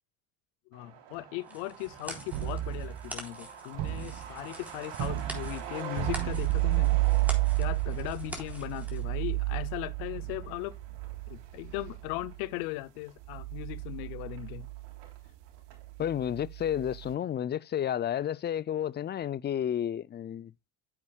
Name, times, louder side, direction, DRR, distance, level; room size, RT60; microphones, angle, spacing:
voice 1, 0.7-6.9 7.6-10.8 11.3-14.7, left 18 dB, 85° left, 0.8 m, -38 dB
Truck, 0.7-15.9 16.2-16.3 16.6-17.5 17.7-17.8 18.2-18.6, right 8 dB, 90° right, 3.5 m, -47 dB
sound 1, 1.4-9.0, equal, 5° right, 3.8 m, -45 dB
sound 2, 2.3-3.2 3.7-4.4 4.9-12.5 13.2-17.1, right 18 dB, 65° right, 1.1 m, -32 dB
voice 2, 16.0-20.5, left 10 dB, 25° left, 0.4 m, -31 dB
9.5 x 8.7 x 2.3 m
supercardioid pair, 80°, 45 cm